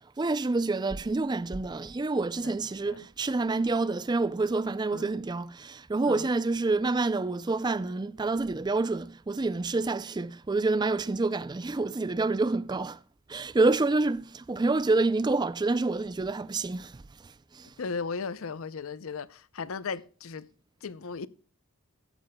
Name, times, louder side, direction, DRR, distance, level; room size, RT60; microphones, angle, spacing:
voice 1, 0.2-13.0 13.3-16.9, right 3 dB, 20° right, 0.4 m, -27 dB
voice 2, 17.8-20.5 20.8-21.3, left 5 dB, 90° left, 0.6 m, -36 dB
15.5 x 12.5 x 2.2 m
head